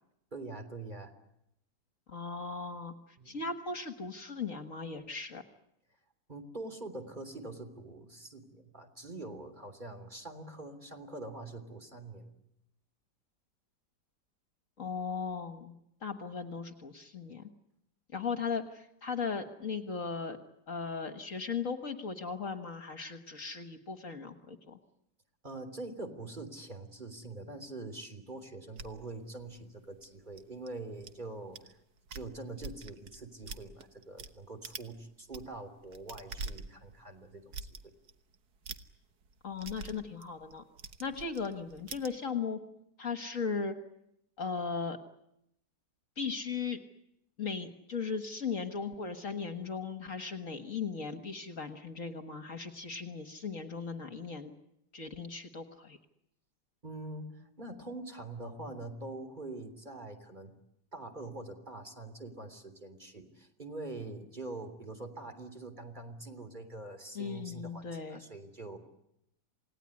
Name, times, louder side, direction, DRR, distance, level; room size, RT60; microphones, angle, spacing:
voice 1, 0.3-1.1 3.2-3.4 6.3-12.3 25.4-31.8 32.1-38.0 56.8-60.5 60.9-68.8, right 2 dB, 25° right, 7 dB, 3.4 m, -44 dB
voice 2, 2.1-2.9 3.3-5.4 14.8-15.8 16.0-17.5 18.1-20.4 20.7-24.8 39.4-40.6 41.0-42.6 43.0-43.7 44.4-45.0 46.2-46.8 47.4-54.5 54.9-56.0 67.2-68.2, left 5 dB, 50° left, 7 dB, 1.8 m, -37 dB
sound 1, 28.8-31.1 31.6-31.7 32.0-34.3 34.6-34.9 35.2-42.1, right 4 dB, 65° right, 1.8 m, -45 dB
28.5 x 19.0 x 9.8 m, 0.82 s
omnidirectional pair, 1.8 m